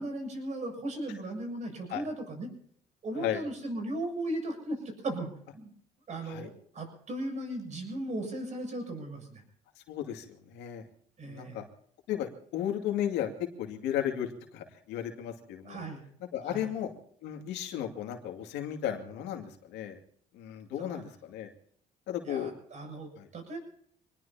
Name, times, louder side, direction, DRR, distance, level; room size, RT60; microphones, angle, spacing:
voice 1, 0.0-2.5 3.0-5.7 6.1-9.4 11.2-11.6 15.6-16.1 16.4-16.7 20.8-21.0 22.2-23.6, right 1 dB, 45° right, 3 dB, 7.5 m, -37 dB
voice 2, 9.9-10.8 11.2-11.6 12.1-15.8 16.3-16.9 17.2-20.0 20.3-21.5 22.1-22.5 23.1-23.3, left 10 dB, 90° left, 4 dB, 2.5 m, -34 dB
25.5 x 19.5 x 2.9 m, 0.63 s
cardioid pair, 110°, 17 cm